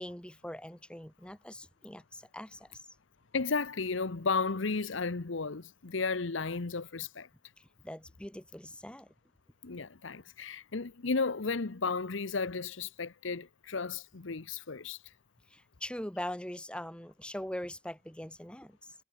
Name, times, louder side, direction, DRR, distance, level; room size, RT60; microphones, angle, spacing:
voice 1, 0.0-2.8 7.6-9.1 15.5-18.9, left 1 dB, 5° left, 1.8 m, -42 dB
voice 2, 3.3-7.3 9.6-15.0, left 4 dB, 80° left, 0.9 m, -33 dB
head